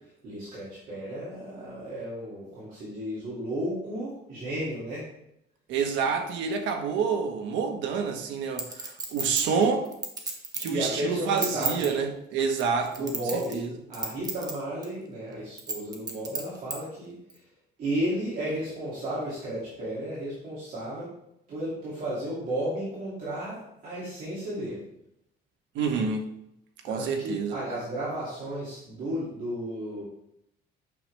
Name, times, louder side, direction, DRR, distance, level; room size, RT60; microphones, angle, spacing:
voice 1, 0.2-5.1 10.7-11.9 12.9-17.4 17.8-21.1 21.5-24.8 26.9-30.0, right 1 dB, 50° right, -9 dB, 2.6 m, -33 dB
voice 2, 5.7-9.9 10.5-12.9 13.5-13.7 25.7-26.3 26.8-27.6, right 5 dB, 90° right, 4 dB, 1.3 m, -28 dB
Chink clink, 8.6-10.8 11.2-11.9 12.5-13.7 13.9-14.5 14.8-14.9 15.6-16.8 17.3-17.4, right 3 dB, 20° right, 1.0 m, -32 dB
8.5 x 6.4 x 3.4 m, 0.79 s
cardioid pair, 175°, 18 cm